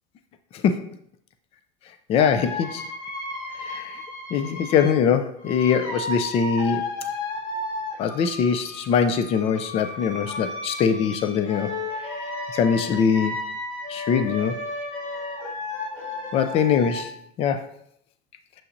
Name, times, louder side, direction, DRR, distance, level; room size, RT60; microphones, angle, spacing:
voice 1, 2.1-2.8 3.6-4.0 4.3-6.9 8.0-11.8 12.5-13.5 13.9-14.6 16.3-17.1 17.4-17.6, left 7 dB, 35° left, 9 dB, 0.5 m, -22 dB
sound 1, 2.2-5.0 5.4-17.0, left 2 dB, 50° left, 1.8 m, -33 dB
7.1 x 5.6 x 2.6 m, 0.64 s
cardioid pair, 150°, 17 cm